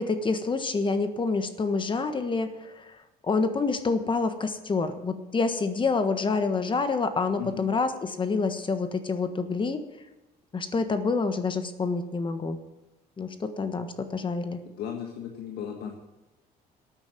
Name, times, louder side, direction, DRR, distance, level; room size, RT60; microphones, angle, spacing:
voice 1, 0.0-2.8 3.2-7.9 8.2-9.8 10.5-12.6 13.2-14.6, left 4 dB, 30° left, 9 dB, 1.4 m, -27 dB
voice 2, 7.4-7.7 14.8-16.0, left 8 dB, 75° left, 2 dB, 1.7 m, -36 dB
12.5 x 9.0 x 9.1 m, 1.0 s
cardioid pair, 110°, 17 cm